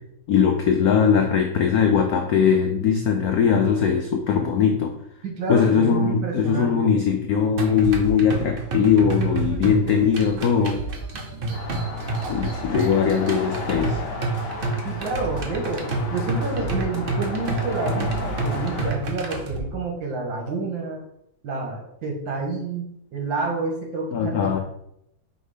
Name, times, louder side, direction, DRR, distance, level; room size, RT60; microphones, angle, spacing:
voice 1, 0.3-4.9 5.5-10.8 12.3-14.0 24.1-24.6, left 7 dB, 80° left, 5 dB, 0.8 m, -20 dB
voice 2, 5.2-6.9 14.8-21.0 21.4-24.6, right 3 dB, 70° right, 1 dB, 2.1 m, -29 dB
sound 1, 7.6-19.6, right 3 dB, 55° right, 0.6 m, -28 dB
sound 2, 11.5-18.9, left 3 dB, 60° left, 1.7 m, -34 dB
4.9 x 4.3 x 5.0 m, 0.76 s
omnidirectional pair, 2.2 m